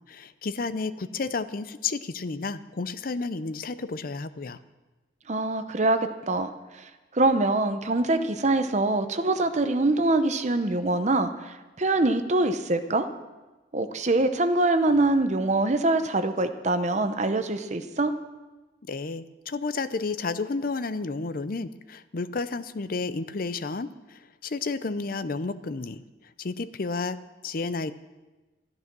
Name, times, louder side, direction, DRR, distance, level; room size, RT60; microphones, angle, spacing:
voice 1, 0.1-4.6 18.9-26.0 26.4-27.2 27.4-27.9, left 4 dB, 50° left, 13 dB, 0.6 m, -31 dB
voice 2, 5.3-13.1 13.7-18.1, right 2 dB, 40° right, 9 dB, 0.8 m, -24 dB
13.0 x 12.0 x 6.1 m, 1.2 s
head